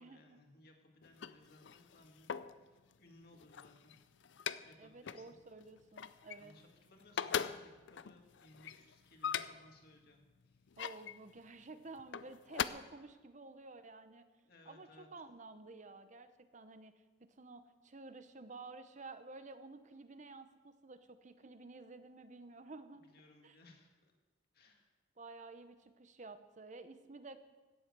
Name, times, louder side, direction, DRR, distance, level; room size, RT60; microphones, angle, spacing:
voice 1, 0.0-4.0 4.6-5.4 6.4-10.8 14.4-15.1 22.9-24.1 24.5-24.9, left 2 dB, 55° left, 2 dB, 2.1 m, -63 dB
sound 1, 1.0-2.6 3.2-4.8 5.1-5.3 5.6-6.7 7.0-9.8 10.4-11.2 12.0-12.7, left 8 dB, 75° left, 0.5 m, -41 dB
voice 2, 4.8-6.5 10.8-14.3 14.7-16.9 17.2-23.0 23.4-23.6 25.2-27.4, right 3 dB, 40° right, 10 dB, 0.8 m, -52 dB
17.0 x 7.7 x 6.7 m, 1.3 s
head